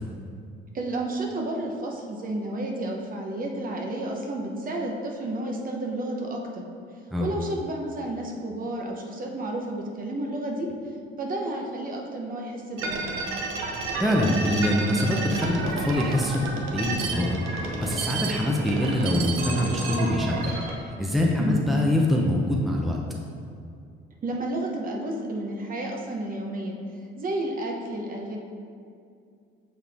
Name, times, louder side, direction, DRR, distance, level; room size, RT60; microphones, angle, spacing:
voice 1, 0.7-6.6 7.2-10.7 11.2-13.2 21.4-21.7 24.2-26.8 27.2-28.4, right 1 dB, 40° right, 1 dB, 0.9 m, -31 dB
sound 1, 12.8-20.8, right 3 dB, 80° right, 0.8 m, -31 dB
voice 2, 14.0-16.4 16.7-17.4 17.6-20.6 21.0-23.0, left 1 dB, ahead, -2 dB, 0.6 m, -24 dB
6.8 x 4.0 x 3.5 m, 2.4 s
cardioid pair, 95°, 21 cm